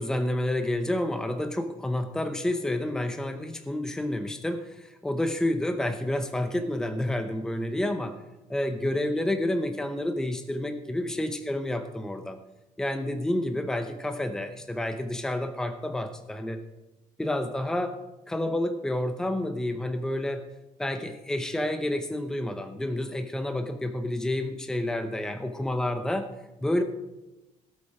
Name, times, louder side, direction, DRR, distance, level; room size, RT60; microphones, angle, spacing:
voice 1, 0.0-8.1 8.5-12.4 12.8-16.6 17.2-18.0 18.3-20.4 20.8-26.3 26.6-26.8, left 1 dB, 5° left, 6 dB, 0.8 m, -29 dB
18.0 x 8.5 x 4.9 m, 1.0 s
cardioid pair, 150°, 13 cm